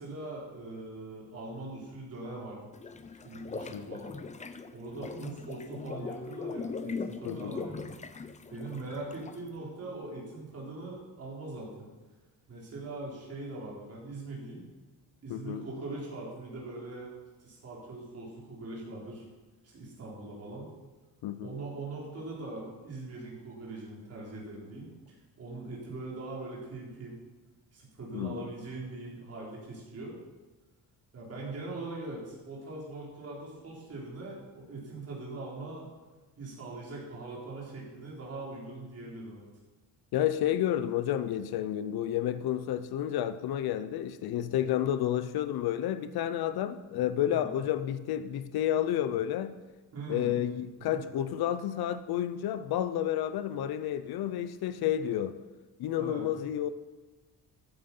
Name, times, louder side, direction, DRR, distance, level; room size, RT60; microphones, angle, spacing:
voice 1, 0.0-2.6 3.2-4.1 4.7-7.9 8.5-11.9 12.5-14.6 15.2-17.1 17.4-19.2 19.6-20.7 21.4-27.2 27.7-30.1 31.1-35.9 36.4-39.4 47.3-47.5 49.9-50.3 50.9-51.0 56.0-56.2, right 2 dB, 40° right, 4.0 m, -41 dB
sound 1, 2.7-9.5, left 4 dB, 20° left, 0.5 m, -40 dB
voice 2, 3.7-4.0 7.3-7.5 15.3-15.6 21.2-21.5 28.1-28.5 40.1-49.5 50.1-55.4 55.8-56.7, left 11 dB, 70° left, 0.7 m, -30 dB
14.0 x 9.3 x 5.5 m
cardioid pair, 170°, 38 cm